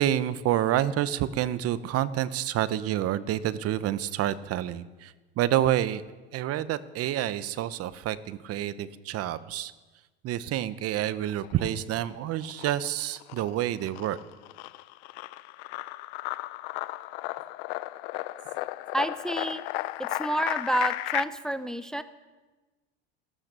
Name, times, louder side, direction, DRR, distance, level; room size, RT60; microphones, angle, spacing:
voice 1, 0.0-6.0 6.3-9.7 10.2-14.2, right 12 dB, 45° right, 15 dB, 1.0 m, -28 dB
sound 1, 11.3-12.1 12.4-21.2, left 19 dB, 70° left, 0.7 m, -34 dB
voice 2, 18.9-19.6 20.0-22.0, right 1 dB, ahead, 11 dB, 0.7 m, -29 dB
17.0 x 12.5 x 6.8 m, 1.2 s
supercardioid pair, 100°, 33 cm